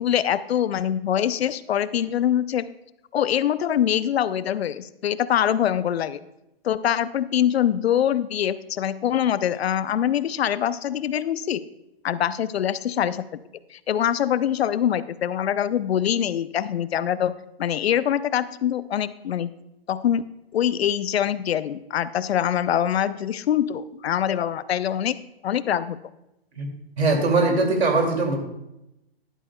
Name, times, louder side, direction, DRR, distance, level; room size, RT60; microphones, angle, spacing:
voice 1, 0.0-2.7 3.1-6.2 6.6-11.6 12.0-13.3 13.7-17.3 17.6-19.5 19.9-20.2 20.5-25.2 25.4-26.0, left 10 dB, 80° left, 15 dB, 0.6 m, -24 dB
voice 2, 27.0-28.4, right 3 dB, 85° right, 3 dB, 2.5 m, -21 dB
11.0 x 9.9 x 2.3 m, 0.89 s
hypercardioid pair, 145°, 31 cm